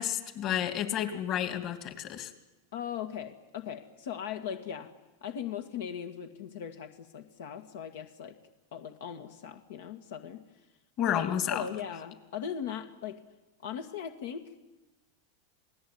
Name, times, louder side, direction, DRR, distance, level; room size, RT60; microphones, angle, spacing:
voice 1, 0.0-2.3 11.0-11.7, left 10 dB, 40° left, 9 dB, 2.8 m, -31 dB
voice 2, 2.7-4.9 5.2-8.4 8.7-10.4 11.0-13.2 13.6-14.4, left 8 dB, 75° left, 6 dB, 2.0 m, -39 dB
28.0 x 18.5 x 9.6 m, 1.1 s
hypercardioid pair, 120°, 0 cm